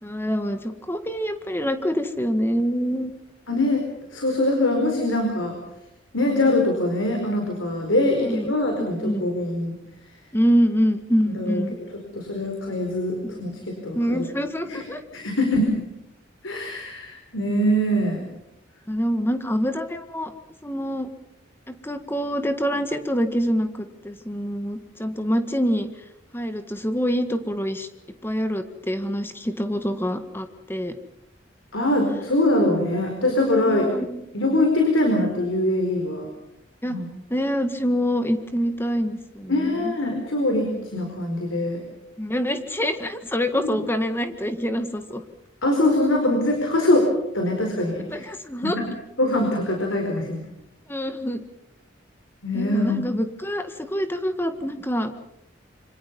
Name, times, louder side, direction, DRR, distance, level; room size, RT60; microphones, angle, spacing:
voice 1, 0.0-3.1 8.2-8.5 9.0-9.2 10.3-11.8 13.3-13.6 13.9-15.0 18.9-20.3 20.6-21.1 21.7-25.9 26.3-27.9 28.2-31.0 33.6-34.2 36.8-37.0 37.3-39.9 40.8-40.9 42.2-45.2 48.1-48.8 50.9-51.4 52.5-55.1, equal, 10° left, 8 dB, 1.8 m, -25 dB
voice 2, 3.5-3.8 4.1-5.6 6.1-9.7 11.3-11.6 12.1-14.2 14.7-14.8 15.1-15.8 16.4-18.2 31.7-33.9 34.3-36.3 36.9-37.1 39.5-41.8 43.7-43.8 45.6-47.1 47.3-48.3 48.6-48.8 49.2-50.4 52.4-53.0, left 1 dB, 85° left, 3 dB, 4.8 m, -23 dB
27.0 x 26.0 x 5.5 m, 0.84 s
head